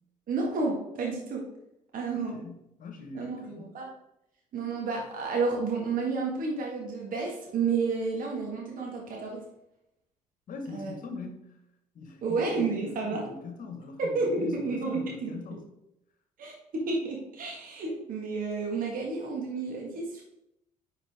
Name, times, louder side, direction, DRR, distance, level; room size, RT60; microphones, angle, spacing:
voice 1, 0.3-1.5 1.9-2.3 3.1-3.9 4.5-9.4 10.7-10.9 12.2-13.2 14.0-15.6 16.4-20.2, right 4 dB, 45° right, -1 dB, 1.8 m, -31 dB
voice 2, 2.1-3.7 10.5-11.5 11.9-15.6, left 4 dB, 45° left, 5 dB, 1.4 m, -42 dB
9.5 x 4.3 x 3.5 m, 0.84 s
figure-of-eight pair, 50°, 19 cm